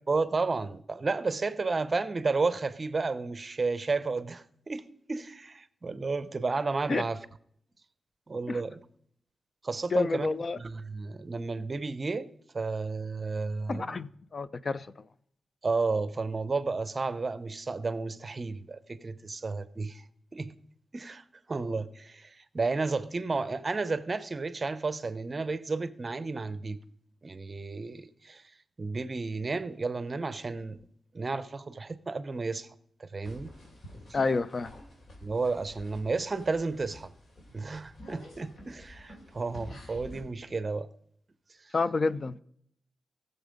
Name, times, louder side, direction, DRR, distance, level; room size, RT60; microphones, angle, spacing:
voice 1, 0.1-7.2 8.3-8.8 9.6-10.3 10.6-12.3 12.5-14.0 15.6-20.0 20.3-20.5 20.9-26.8 27.2-28.4 28.8-30.9 31.1-32.7 33.0-33.5 35.2-37.1 37.5-40.9 41.6-41.7, right 3 dB, 35° right, 0.6 m, -32 dB
voice 2, 9.9-10.6 13.7-14.9 34.1-34.7 41.7-42.4, left 3 dB, 45° left, 0.4 m, -29 dB
sound 1, 33.2-40.2, left 1 dB, 70° left, 3.2 m, -49 dB
15.5 x 6.9 x 5.1 m
cardioid pair, 85°, 0 cm